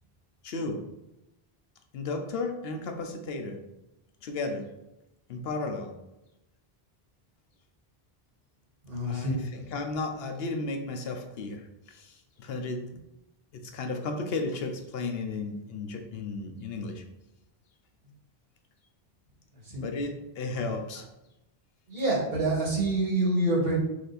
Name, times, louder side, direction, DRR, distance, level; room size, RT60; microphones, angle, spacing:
voice 1, 0.4-0.8 1.9-3.6 4.2-4.7 5.3-5.9 9.0-11.6 11.9-12.1 12.4-12.8 13.5-17.0 19.8-21.1, left 3 dB, 75° left, 5 dB, 0.8 m, -34 dB
voice 2, 8.8-9.4 19.6-19.9 21.9-23.8, right 2 dB, 65° right, -4 dB, 1.7 m, -27 dB
4.7 x 2.5 x 4.0 m, 0.91 s
omnidirectional pair, 1.0 m